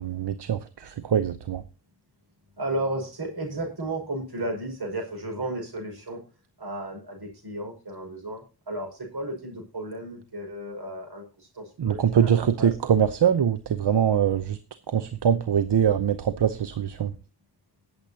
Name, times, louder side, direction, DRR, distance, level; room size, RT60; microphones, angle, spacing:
voice 1, 0.0-1.6 11.8-14.6 14.9-17.1, right 8 dB, 85° right, 0.8 m, -23 dB
voice 2, 2.6-6.2 6.6-12.7, right 1 dB, 65° right, 5.9 m, -34 dB
22.0 x 7.8 x 2.8 m
wide cardioid pair, 55°, 40 cm